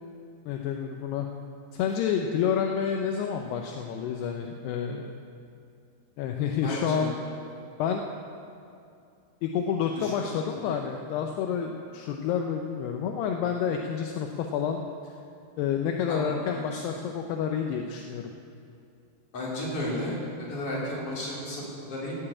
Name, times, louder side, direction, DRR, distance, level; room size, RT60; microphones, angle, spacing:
voice 1, 0.5-1.3 1.7-5.1 6.2-7.1 7.8-8.0 9.4-15.1 15.6-18.3, left 7 dB, 80° left, 3 dB, 2.7 m, -29 dB
voice 2, 6.6-7.1 10.0-10.1 16.1-16.9 19.3-20.2 20.5-22.2, left 1 dB, 35° left, -6 dB, 4.0 m, -33 dB
17.0 x 6.9 x 8.6 m, 2.5 s
omnidirectional pair, 4.9 m